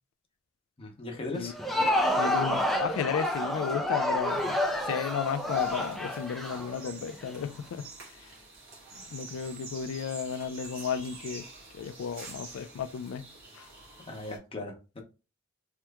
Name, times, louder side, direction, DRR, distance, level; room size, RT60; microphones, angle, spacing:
voice 1, 0.8-1.5 14.1-15.0, left 2 dB, 30° left, 0.8 m, -38 dB
Crowd, 1.4-7.3, left 1 dB, ahead, 0.4 m, -29 dB
voice 2, 1.8-8.3 8.9-11.4 11.7-13.3 13.5-13.7, left 7 dB, 85° left, 0.3 m, -34 dB
sound 1, 4.3-14.4, right 3 dB, 65° right, 1.4 m, -48 dB
3.3 x 2.9 x 2.2 m
head